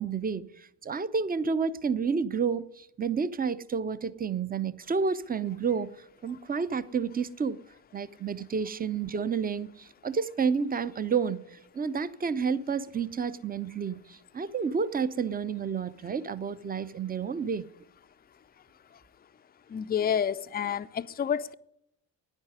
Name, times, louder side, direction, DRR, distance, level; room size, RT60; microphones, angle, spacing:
voice 1, 0.0-5.9 6.2-7.6 7.9-17.7, right 6 dB, 20° right, 0.7 m, -30 dB
voice 2, 19.7-21.5, left 8 dB, 20° left, 0.6 m, -29 dB
10.5 x 9.9 x 9.8 m
figure-of-eight pair, 50°, 49 cm